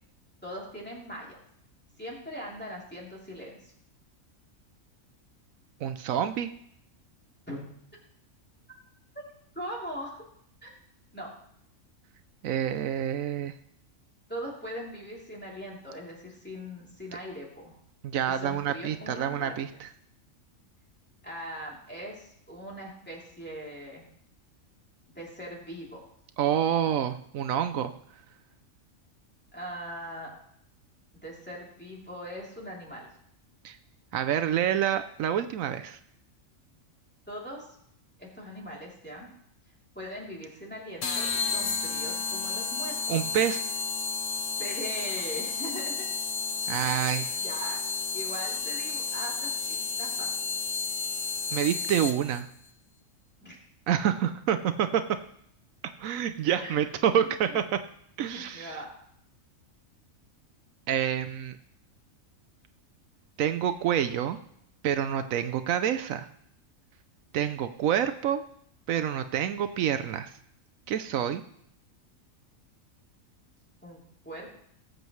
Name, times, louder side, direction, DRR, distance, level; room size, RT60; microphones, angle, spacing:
voice 1, 0.4-1.4 2.0-3.7 7.5-7.6 9.5-10.2 10.6-10.7 11.1-11.3 14.3-17.8 18.3-19.6 21.2-24.0 25.1-26.0 29.5-30.3 31.2-33.1 37.3-37.7 38.2-39.3 39.9-43.2 44.6-46.0 46.8-47.1 47.4-47.8 48.1-50.3 53.4-53.6 56.6-56.8 57.5-57.6 58.3-58.9 73.8-74.0 74.2-74.6, equal, 5° left, -4 dB, 3.0 m, -40 dB
voice 2, 5.8-6.5 12.4-13.5 18.0-19.9 26.4-27.9 33.6-33.8 34.1-36.0 43.1-43.6 46.7-47.3 51.5-52.5 53.9-55.0 56.0-57.8 58.2-58.8 60.9-61.5 63.4-64.4 64.8-66.3 67.3-68.4 68.9-70.3 70.9-71.4, right 9 dB, 80° right, 9 dB, 1.0 m, -27 dB
sound 1, 41.0-52.4, left 5 dB, 70° left, 1.4 m, -32 dB
18.5 x 7.8 x 3.1 m, 0.70 s
omnidirectional pair, 1.4 m